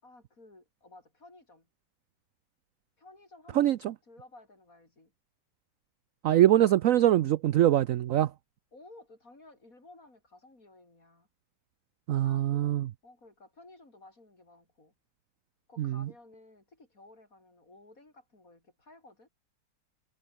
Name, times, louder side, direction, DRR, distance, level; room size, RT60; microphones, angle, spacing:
voice 1, 0.0-1.7 3.0-5.1 8.7-11.3 12.2-12.8 13.0-14.9 15.7-19.3, left 2 dB, 45° left, 6.1 m, -55 dB
voice 2, 6.2-8.3 12.1-12.9 15.8-16.0, right 12 dB, 70° right, 0.8 m, -23 dB
omnidirectional pair, 2.0 m